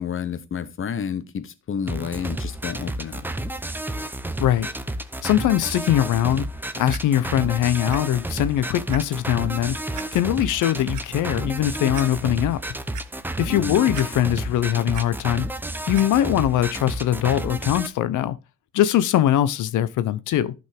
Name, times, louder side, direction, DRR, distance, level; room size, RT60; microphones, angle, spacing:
voice 1, 0.0-3.2 13.5-13.9, left 7 dB, 45° left, 1.1 m, -30 dB
sound 1, 1.9-17.9, right 1 dB, 5° right, 0.7 m, -31 dB
voice 2, 4.4-4.7 5.2-6.5 6.8-9.8 10.1-12.6 13.4-15.5 15.9-18.4 18.7-20.5, left 12 dB, 80° left, 0.9 m, -21 dB
Clock, 6.9-7.0 7.9-8.0 8.4-8.5 8.9-9.0 9.9-10.1 10.7-11.0 11.6-11.7 11.9-12.1 12.5-13.1 13.9-14.5 14.7-15.1 15.9-16.1 16.8-16.9, right 11 dB, 75° right, 1.0 m, -37 dB
11.5 x 5.3 x 3.5 m
cardioid pair, 90°, 30 cm